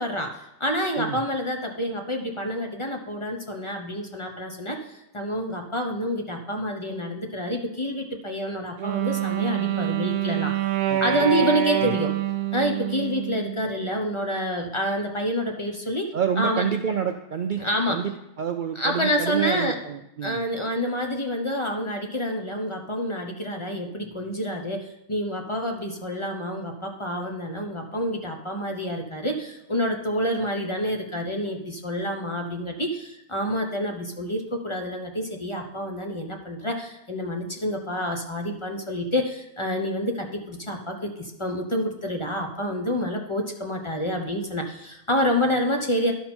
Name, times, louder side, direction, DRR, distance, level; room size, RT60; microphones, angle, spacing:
voice 1, 0.0-10.6 11.0-12.1 12.5-16.6 17.6-18.0 18.8-19.8 20.2-46.1, equal, 30° left, 3 dB, 0.7 m, -28 dB
Wind instrument woodwind instrument, 8.8-13.8, right 10 dB, 60° right, 0.8 m, -26 dB
voice 2, 10.9-11.5 11.8-11.9 16.1-20.4, right 8 dB, 85° right, 6 dB, 0.4 m, -28 dB
11.0 x 5.7 x 4.3 m, 0.84 s
omnidirectional pair, 1.4 m